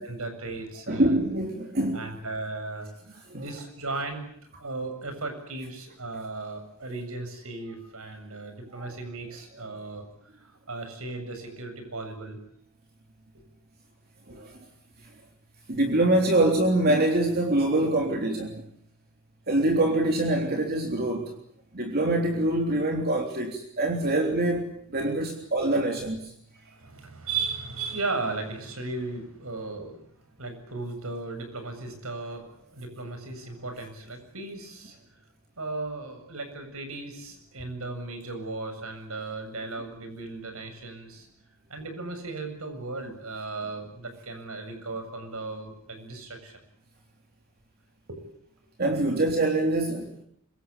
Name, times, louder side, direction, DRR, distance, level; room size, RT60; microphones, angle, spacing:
voice 1, 0.0-1.2 1.9-4.3 4.6-10.0 10.3-12.4 14.3-14.6 26.0-26.1 26.6-30.0 30.4-35.0 35.6-41.3 41.7-46.6 48.1-48.2, right 3 dB, 75° right, 7 dB, 7.5 m, -36 dB
voice 2, 0.9-2.0 3.3-3.4 8.8-8.9 14.3-14.5 15.7-18.6 19.5-21.3 21.7-26.2 48.8-50.2, right 1 dB, 45° right, 2 dB, 3.5 m, -24 dB
25.5 x 24.0 x 8.8 m, 0.67 s
head